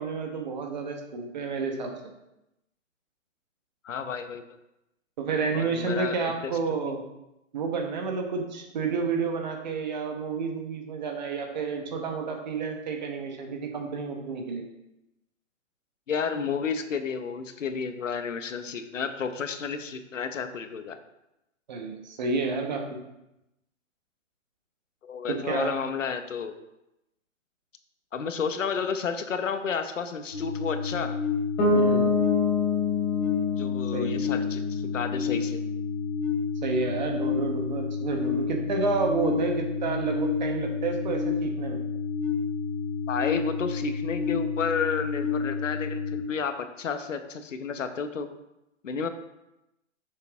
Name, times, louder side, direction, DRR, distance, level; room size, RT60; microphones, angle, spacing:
voice 1, 0.0-1.9 5.2-7.0 7.5-14.6 21.7-23.0 25.3-25.8 31.7-32.3 33.9-34.2 36.6-41.8, right 4 dB, 35° right, 3 dB, 1.3 m, -30 dB
voice 2, 3.8-4.4 5.5-6.5 6.8-6.9 16.1-21.0 25.0-26.6 28.1-31.2 33.6-35.6 43.1-48.3 48.8-49.1, left 6 dB, 70° left, 8 dB, 1.1 m, -31 dB
sound 1, 30.3-46.2, left 6 dB, 5° right, 0.5 m, -30 dB
Bass guitar, 31.6-35.4, left 4 dB, 20° left, 2.7 m, -26 dB
8.9 x 6.7 x 3.6 m, 0.90 s
hypercardioid pair, 165°, 39 cm